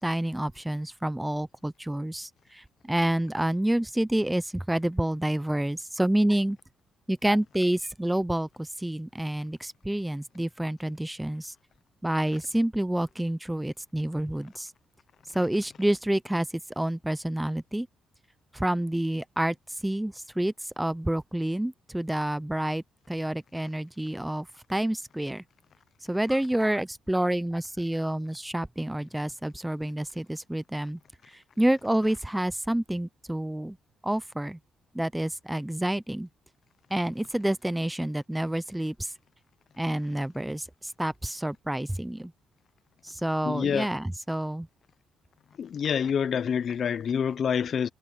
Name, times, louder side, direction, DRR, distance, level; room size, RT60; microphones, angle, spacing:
voice 1, 0.0-6.6 7.1-11.5 12.0-14.7 15.3-16.5 16.8-17.9 18.5-19.6 19.8-25.4 26.1-31.0 31.3-33.8 34.0-34.6 34.9-36.3 36.9-39.1 39.8-42.3 43.0-44.7, right 1 dB, 5° right, 0.7 m, -28 dB
voice 2, 43.4-43.9 45.6-47.9, left 7 dB, 55° left, 0.8 m, -27 dB
cardioid pair, 95°, 0 cm